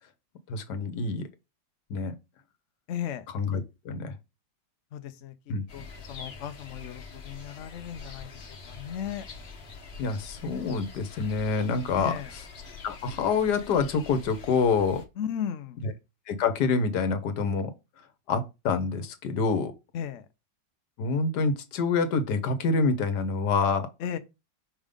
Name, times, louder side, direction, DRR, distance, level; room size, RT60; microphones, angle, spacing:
voice 1, 0.5-1.2 1.9-2.1 3.3-4.1 5.5-5.6 10.0-12.1 12.8-15.0 15.8-15.9 16.3-17.7 18.3-19.7 21.0-23.9, left 4 dB, 65° left, 1.4 m, -26 dB
voice 2, 2.9-3.3 4.9-8.4 8.7-9.3 12.0-12.3 15.2-15.8 19.9-20.3 24.0-24.2, left 9 dB, 80° left, 0.6 m, -36 dB
sound 1, 5.7-15.0, left 4 dB, 40° left, 1.1 m, -45 dB
5.3 x 3.6 x 5.1 m
omnidirectional pair, 2.0 m